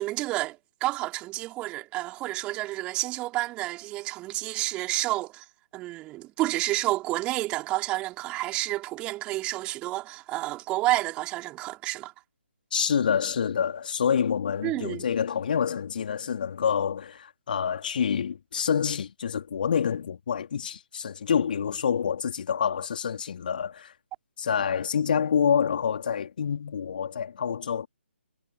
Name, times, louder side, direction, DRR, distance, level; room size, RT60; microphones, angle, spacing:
voice 1, 0.0-5.4 5.7-12.1 14.6-15.0, right 17 dB, 15° right, 3.8 m, -30 dB
voice 2, 12.7-23.9 24.4-27.9, left 7 dB, 45° left, 3.2 m, -27 dB
figure-of-eight pair, 145°, 7 cm